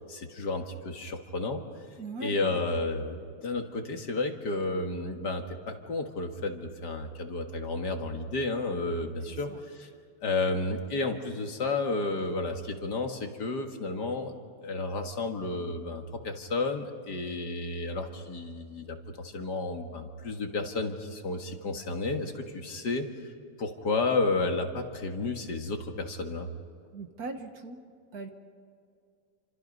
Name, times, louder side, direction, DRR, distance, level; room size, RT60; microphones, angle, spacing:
voice 1, 0.1-1.6 2.2-9.9 10.2-14.3 14.6-23.1 23.6-26.5, left 3 dB, 60° left, 4 dB, 2.3 m, -32 dB
voice 2, 2.0-2.6 9.3-9.6 26.9-27.8 28.1-28.3, right 3 dB, 55° right, 5 dB, 1.8 m, -39 dB
28.5 x 26.0 x 5.4 m, 2.3 s
omnidirectional pair, 2.0 m